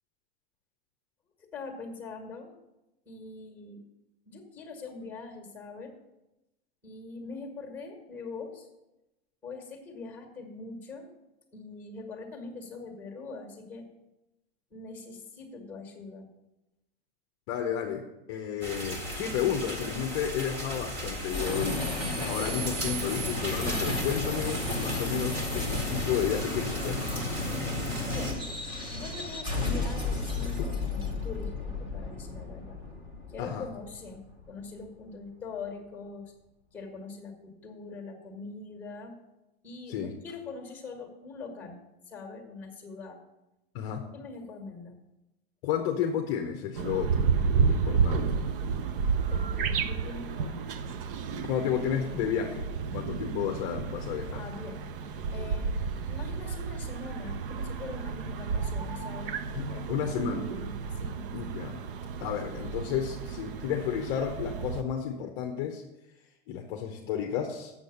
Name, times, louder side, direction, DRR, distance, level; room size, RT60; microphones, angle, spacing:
voice 1, 1.4-2.5 3.0-3.8 4.2-5.9 6.8-8.7 9.4-11.1 11.5-13.9 14.7-16.3 28.1-28.3 28.9-32.8 33.3-36.3 36.7-39.1 39.6-43.2 44.1-45.0 49.3-50.7 54.3-54.8 55.3-55.8 56.0-59.4 59.7-61.3, left 3 dB, 5° left, 3 dB, 1.6 m, -43 dB
voice 2, 17.5-27.0 33.4-33.6 39.9-40.1 43.7-44.1 45.6-47.3 47.7-48.3 51.4-52.7 52.9-54.4 59.5-60.4 61.3-61.8 62.2-65.8 66.5-67.7, left 8 dB, 35° left, 4 dB, 0.7 m, -32 dB
sound 1, 18.6-28.3, equal, 30° right, 1.9 m, -37 dB
sound 2, 21.3-34.7, left 2 dB, 15° right, 1.0 m, -33 dB
sound 3, 46.8-64.8, right 5 dB, 60° right, 0.7 m, -31 dB
8.2 x 7.1 x 6.9 m, 0.96 s
supercardioid pair, 170°, 31 cm